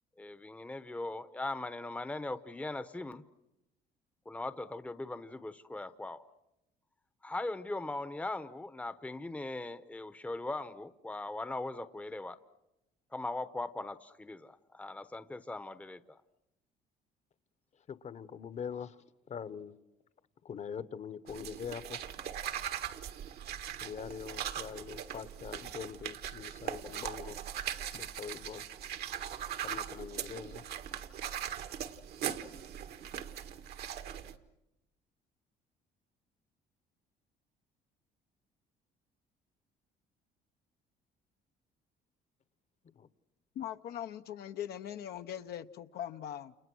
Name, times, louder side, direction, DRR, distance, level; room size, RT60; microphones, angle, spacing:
voice 1, 0.2-3.2 4.3-6.2 7.2-12.4 13.1-16.2, left 2 dB, 10° left, 12 dB, 0.9 m, -40 dB
voice 2, 17.9-19.0 19.3-19.8 20.4-22.0 23.8-27.4 27.9-28.6 29.6-30.6 42.9-43.1, left 7 dB, 45° left, 14 dB, 1.1 m, -43 dB
sound 1, 21.3-34.3, right 10 dB, 70° right, 1.5 m, -40 dB
voice 3, 43.5-46.5, left 10 dB, 70° left, 7 dB, 0.9 m, -41 dB
29.0 x 29.0 x 6.3 m, 0.92 s
cardioid pair, 110°, 17 cm